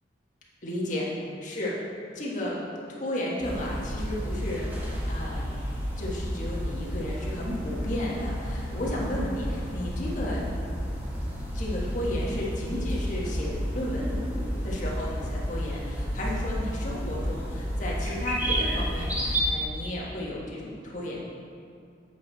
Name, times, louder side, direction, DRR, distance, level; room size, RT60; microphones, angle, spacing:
voice 1, 0.6-1.1 1.4-1.7 2.1-2.6 3.0-5.5 6.0-10.4 11.5-14.3 14.6-21.2, left 1 dB, 45° left, -5 dB, 1.4 m, -33 dB
sound 1, 3.4-19.4, equal, 10° right, 1.2 m, -31 dB
8.3 x 5.8 x 4.0 m, 2.4 s
head